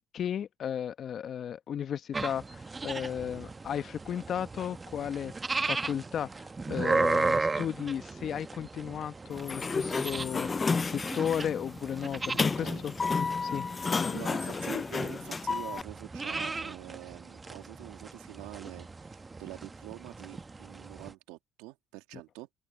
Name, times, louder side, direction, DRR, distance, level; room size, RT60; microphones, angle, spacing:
voice 1, 0.0-5.3 5.7-6.3 6.7-14.4, left 9 dB, 60° left, 1.2 m, -35 dB
sound 1, 2.1-21.1, right 3 dB, 25° right, 1.2 m, -36 dB
Sliding door, 9.3-15.8, left 4 dB, 35° left, 0.5 m, -32 dB
voice 2, 12.3-12.9 14.1-22.5, right 20 dB, 85° right, 2.3 m, -45 dB
open air
hypercardioid pair, 60°, 0 cm